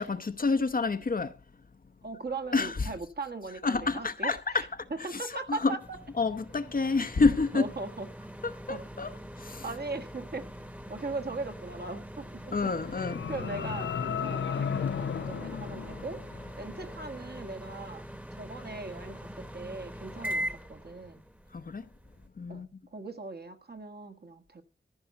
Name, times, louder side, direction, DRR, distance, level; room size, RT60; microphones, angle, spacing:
voice 1, 0.0-1.3 2.5-2.9 3.6-4.7 5.0-5.8 6.2-7.7 8.4-9.1 9.4-9.6 12.5-13.2 21.5-21.9 22.4-22.7, left 4 dB, 50° left, 0.8 m, -28 dB
voice 2, 2.0-6.0 7.5-8.1 8.7-8.8 9.6-10.5 10.9-12.6 13.3-18.0 18.3-21.2 22.5-24.6, right 3 dB, 55° right, 1.6 m, -39 dB
sound 1, 5.8-22.3, equal, 5° right, 1.1 m, -42 dB
sound 2, 12.5-16.7, left 7 dB, 75° left, 0.6 m, -34 dB
14.5 x 5.5 x 8.0 m
wide cardioid pair, 75°, 19 cm